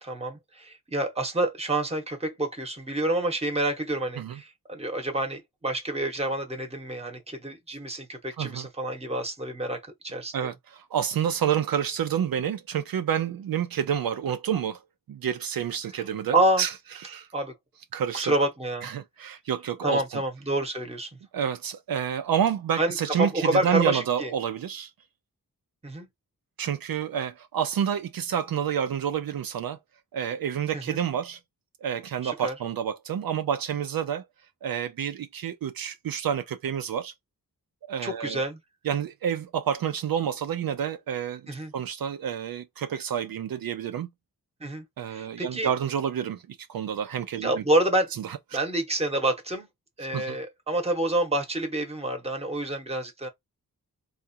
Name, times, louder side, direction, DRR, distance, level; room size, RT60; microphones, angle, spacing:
voice 1, 0.0-9.8 10.0-10.5 16.3-16.6 17.3-17.5 18.1-18.9 19.8-21.1 22.8-24.3 25.8-26.1 30.7-31.0 32.2-32.5 38.0-38.6 41.5-41.7 44.6-45.7 47.4-48.1 48.5-49.7 50.0-53.3, right 1 dB, 15° right, 1.0 m, -28 dB
voice 2, 8.4-8.7 10.3-14.8 15.1-16.7 17.0-17.3 17.9-18.4 18.8-20.2 21.3-24.9 26.6-29.8 30.1-31.4 31.8-34.2 34.6-37.1 37.9-38.4 38.8-44.1 45.0-47.6 48.2-48.4 50.1-50.4, right 8 dB, 75° right, 0.5 m, -29 dB
4.1 x 2.4 x 2.6 m
wide cardioid pair, 135°, 36 cm